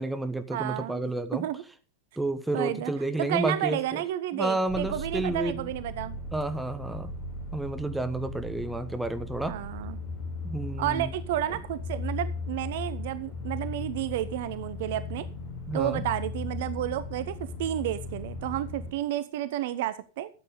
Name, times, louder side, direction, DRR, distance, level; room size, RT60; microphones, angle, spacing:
voice 1, 0.0-1.5 2.2-3.8 4.3-5.7 6.3-7.1 7.5-9.6 10.4-11.1 15.7-16.0, right 2 dB, 5° right, 9 dB, 1.2 m, -30 dB
voice 2, 0.5-1.6 2.5-2.9 3.2-6.2 9.5-10.0 10.8-15.3 15.7-20.3, right 13 dB, 50° right, 15 dB, 0.8 m, -31 dB
sound 1, 4.7-18.9, left 3 dB, 30° left, 6.5 m, -37 dB
13.0 x 8.4 x 5.0 m, 0.36 s
figure-of-eight pair, 90°, 0 cm